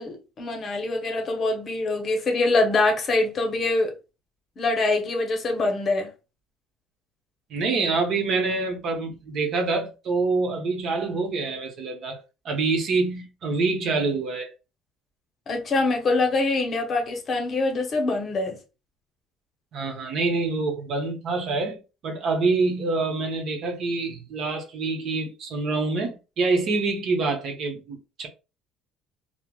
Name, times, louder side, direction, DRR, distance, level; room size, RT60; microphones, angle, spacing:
voice 1, 0.0-3.9 4.6-6.1 15.5-18.6, left 2 dB, 40° left, 0.7 m, -24 dB
voice 2, 7.5-12.2 12.4-14.5 19.7-28.3, right 3 dB, 55° right, 0.8 m, -26 dB
3.2 x 2.1 x 2.3 m
cardioid pair, 120°, 0 cm